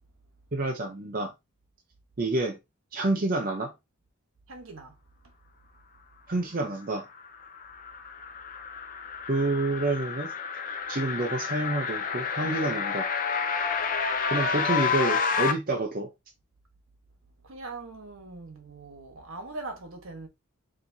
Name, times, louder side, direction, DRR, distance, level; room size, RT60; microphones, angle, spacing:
voice 1, 0.5-1.3 2.2-2.6 2.9-3.7 6.3-7.1 9.3-10.3 10.9-13.1 14.3-16.1, right 2 dB, 40° right, 0.6 m, -28 dB
voice 2, 4.5-5.0 5.2-5.3 17.4-20.3, right 3 dB, 70° right, 1.2 m, -41 dB
sound 1, 7.2-15.5, left 5 dB, 40° left, 0.6 m, -30 dB
5.0 x 2.8 x 2.7 m
head